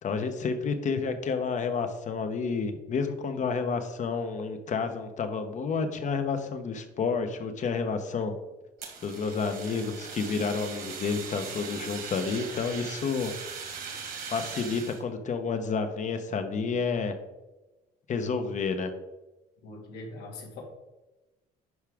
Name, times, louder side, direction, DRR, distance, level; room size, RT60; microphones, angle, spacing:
voice 1, 0.0-8.3 9.0-13.3 14.3-17.1 18.1-18.9, left 5 dB, 45° left, 7 dB, 1.0 m, -30 dB
Fire, 8.8-15.0, right 6 dB, 60° right, 1.9 m, -40 dB
voice 2, 19.6-20.6, left 2 dB, 85° left, 0 dB, 2.2 m, -42 dB
11.0 x 4.8 x 3.6 m, 1.1 s
cardioid pair, 110°, 17 cm